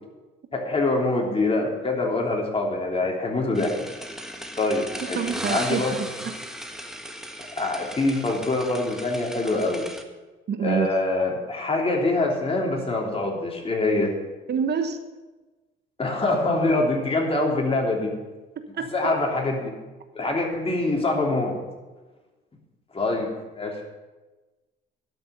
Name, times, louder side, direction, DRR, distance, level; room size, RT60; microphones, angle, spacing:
voice 1, 0.5-3.7 4.6-5.2 5.5-6.0 7.6-9.8 10.6-14.1 16.0-18.1 18.9-19.7 20.1-21.5 22.9-23.3 23.6-23.8, left 2 dB, 30° left, 0 dB, 3.2 m, -24 dB
sound 1, 3.5-10.0, equal, ahead, 1.4 m, -36 dB
voice 2, 5.1-6.3 10.5-10.9 14.5-15.0 18.7-18.9, right 7 dB, 55° right, 9 dB, 1.1 m, -26 dB
12.0 x 6.3 x 9.1 m, 1.2 s
cardioid pair, 90°, 20 cm